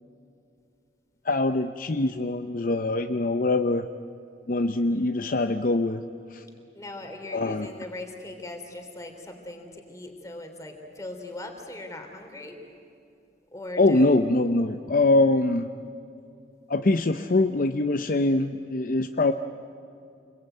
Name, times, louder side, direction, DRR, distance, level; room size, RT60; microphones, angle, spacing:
voice 1, 1.2-3.9 4.5-6.0 6.3-6.4 7.3-7.7 13.8-15.7 16.7-19.3, left 2 dB, 50° left, 7 dB, 0.7 m, -23 dB
voice 2, 6.7-12.5 13.5-14.0, left 2 dB, 20° left, 3 dB, 3.3 m, -39 dB
28.5 x 21.5 x 9.1 m, 2.5 s
head